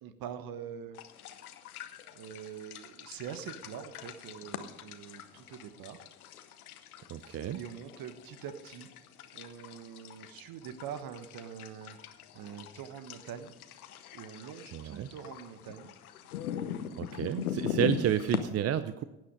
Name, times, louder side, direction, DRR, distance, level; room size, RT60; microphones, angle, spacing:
voice 1, 0.0-1.0 2.1-6.0 7.2-8.9 9.3-12.0 12.3-13.5 14.1-15.9, right 8 dB, 55° right, 11 dB, 1.4 m, -44 dB
sound 1, 0.9-18.4, left 9 dB, 80° left, 1.0 m, -41 dB
voice 2, 7.1-7.6 14.7-15.1 17.0-19.0, right 10 dB, 35° right, 13 dB, 0.6 m, -31 dB
16.0 x 9.3 x 5.2 m, 1.0 s
figure-of-eight pair, 55°, 43 cm